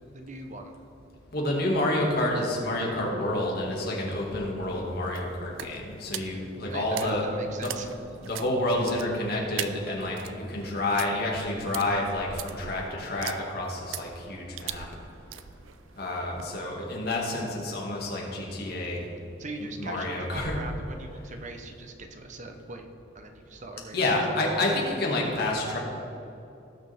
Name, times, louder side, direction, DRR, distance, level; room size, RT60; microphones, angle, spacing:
voice 1, 0.1-0.8 6.7-7.9 19.4-22.9 23.1-24.0, right 2 dB, 40° right, 5 dB, 0.8 m, -40 dB
voice 2, 1.3-7.7 8.2-14.9 16.0-19.1 19.8-20.6 23.9-25.8, left 1 dB, 55° left, -2 dB, 2.1 m, -29 dB
sound 1, 3.6-16.6, right 10 dB, 90° right, 0.5 m, -42 dB
17.5 x 6.6 x 3.6 m, 2.8 s
head